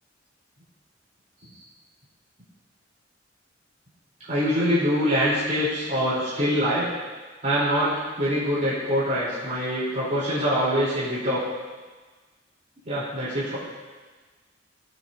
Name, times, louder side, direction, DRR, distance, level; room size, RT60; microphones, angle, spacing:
voice 1, 4.3-6.9 7.4-11.4 12.8-13.6, equal, 40° right, -10 dB, 3.3 m, -24 dB
18.0 x 6.5 x 2.6 m, 1.3 s
head